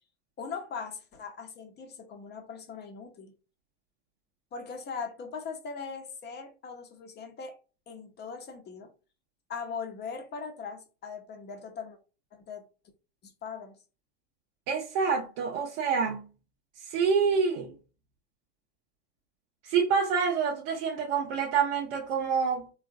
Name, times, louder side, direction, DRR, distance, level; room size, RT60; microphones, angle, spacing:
voice 1, 0.4-3.3 4.5-7.5 7.9-8.9 9.5-12.0 12.3-12.6 13.2-13.8, left 5 dB, 30° left, 1.0 m, -40 dB
voice 2, 14.7-16.3 16.8-17.7 19.6-22.7, right 6 dB, 55° right, 0.7 m, -27 dB
3.5 x 2.5 x 2.5 m
hypercardioid pair, 95°, 34 cm